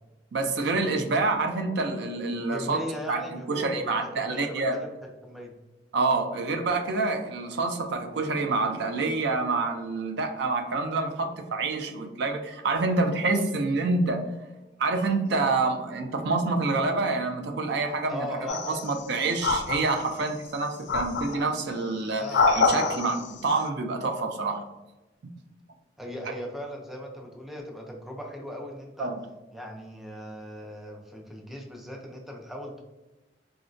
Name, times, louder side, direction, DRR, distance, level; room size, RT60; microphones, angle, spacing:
voice 1, 0.3-2.8 3.1-3.2 3.5-4.8 5.9-14.2 14.8-18.3 18.7-24.6 29.0-29.2, right 3 dB, 65° right, 5 dB, 0.4 m, -27 dB
voice 2, 2.5-4.9 5.2-5.5 18.1-19.0 22.2-23.0 26.0-29.1 29.5-32.8, equal, ahead, 0 dB, 0.4 m, -38 dB
sound 1, 18.5-19.0 19.4-20.3 20.9-21.5 22.1-23.3, left 4 dB, 65° left, 0.4 m, -26 dB
3.7 x 2.1 x 2.5 m, 1.0 s
head